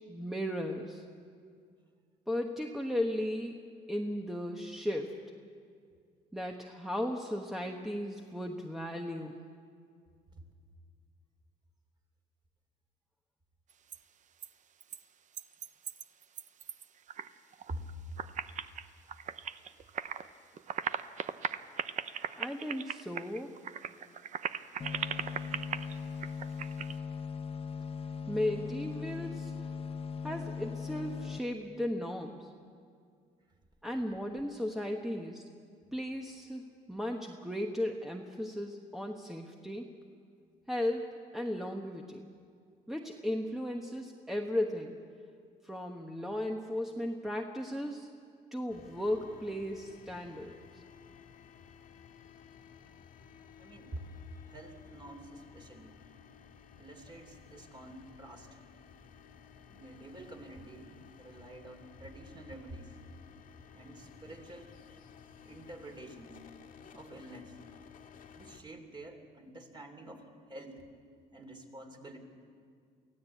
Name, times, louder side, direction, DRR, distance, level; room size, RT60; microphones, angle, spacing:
voice 1, 0.1-1.1 2.3-3.6 3.9-5.2 6.3-9.4 22.3-23.6 28.3-29.7 30.2-32.5 33.8-35.4 35.9-39.9 40.7-42.3 42.9-45.0 45.6-48.1 48.5-50.8, left 1 dB, ahead, 2 dB, 1.2 m, -36 dB
sound 1, 13.7-14.0 14.4-14.5 14.8-15.0 15.3-17.3 17.5-17.9 18.2-20.3 20.5-27.0, right 8 dB, 45° right, 0.7 m, -39 dB
sound 2, 24.8-31.4, left 6 dB, 35° left, 1.0 m, -39 dB
sound 3, 48.7-68.6, left 7 dB, 55° left, 1.7 m, -55 dB
voice 2, 53.6-54.1 54.4-56.0 56.8-58.6 59.7-63.0 63.7-64.7 65.4-66.4 66.9-67.6 68.3-70.8 71.3-72.2, right 1 dB, 25° right, 4 dB, 3.1 m, -48 dB
24.0 x 15.5 x 8.4 m, 2.2 s
cardioid pair, 110°, 17 cm